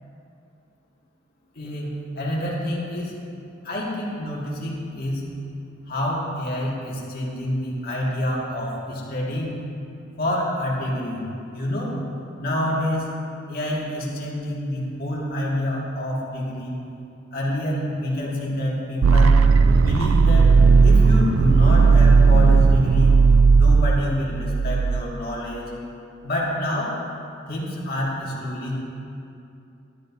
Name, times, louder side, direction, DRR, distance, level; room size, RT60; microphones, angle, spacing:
voice 1, 1.6-3.1 3.6-5.4 5.9-9.6 10.2-11.3 11.5-12.0 12.4-13.1 13.5-16.8 17.3-19.5 19.7-20.5 20.8-23.2 23.5-25.7 26.2-27.0 27.5-28.7, left 1 dB, 50° left, -5 dB, 2.0 m, -27 dB
sound 1, 19.0-25.0, right 4 dB, 75° right, 0.4 m, -15 dB
12.5 x 11.0 x 2.7 m, 2.7 s
head